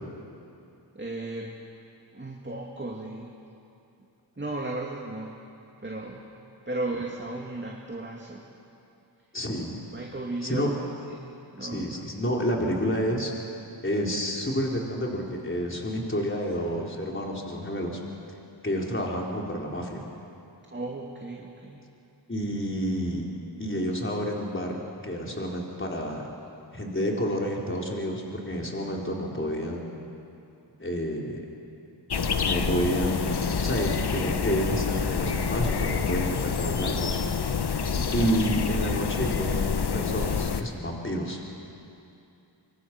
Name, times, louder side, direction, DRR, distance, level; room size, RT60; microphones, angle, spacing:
voice 1, 0.9-1.6 2.1-3.3 4.0-4.1 4.4-5.4 5.8-6.3 6.7-8.5 9.9-12.2 20.7-21.8 37.9-38.4, right 2 dB, 25° right, -1 dB, 2.6 m, -36 dB
voice 2, 9.3-9.8 10.4-10.7 11.6-13.3 13.8-18.0 18.6-20.0 22.3-23.3 23.6-26.3 26.7-30.0 30.8-31.5 32.4-37.2 38.1-41.4, equal, 25° left, -1 dB, 4.2 m, -29 dB
sound 1, 32.1-40.6, left 6 dB, 55° left, 1.2 m, -27 dB
25.0 x 23.0 x 6.2 m, 2.7 s
cardioid pair, 45°, 46 cm